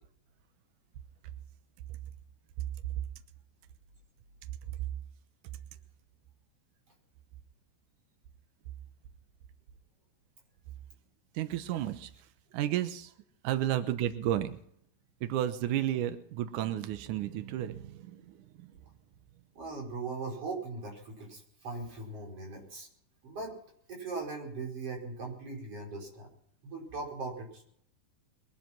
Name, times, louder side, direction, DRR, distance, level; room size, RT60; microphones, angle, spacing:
voice 1, 11.3-13.1 13.4-14.6 15.2-18.7, right 12 dB, 90° right, 10 dB, 1.7 m, -32 dB
voice 2, 19.5-22.9 23.2-23.5 23.9-26.3 26.6-27.6, right 3 dB, 35° right, 0 dB, 5.8 m, -39 dB
22.5 x 10.0 x 5.9 m, 0.67 s
omnidirectional pair, 5.1 m